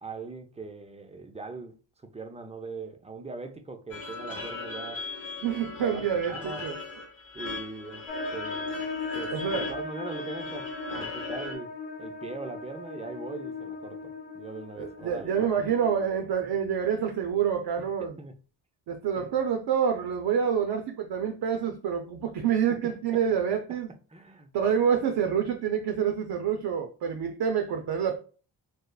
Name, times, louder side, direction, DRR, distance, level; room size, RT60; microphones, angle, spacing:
voice 1, 0.0-5.1 5.8-6.7 7.3-8.7 9.1-15.6 18.2-18.4 19.2-19.4 22.7-22.8 23.1-23.2 24.1-24.5, right 3 dB, 15° right, 0.5 m, -41 dB
sound 1, 3.9-11.5, left 3 dB, 50° left, 0.9 m, -39 dB
voice 2, 5.4-6.7 9.3-9.7 14.8-18.2 18.9-23.9 24.5-28.2, right 8 dB, 65° right, 0.5 m, -27 dB
sound 2, 8.1-16.1, left 3 dB, 75° left, 0.9 m, -38 dB
3.1 x 2.1 x 2.3 m
supercardioid pair, 50°, 44 cm